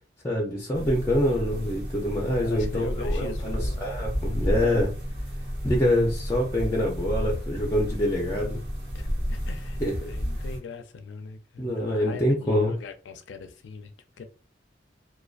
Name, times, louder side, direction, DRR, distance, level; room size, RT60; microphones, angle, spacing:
voice 1, 0.2-4.9 5.6-8.6 9.8-9.9 11.6-12.7, left 1 dB, 15° left, 0.4 m, -25 dB
sound 1, 0.7-10.6, equal, 70° right, 1.1 m, -31 dB
voice 2, 2.4-3.9 8.9-13.9 14.2-14.3, left 4 dB, 80° left, 0.4 m, -41 dB
2.4 x 2.2 x 2.3 m
head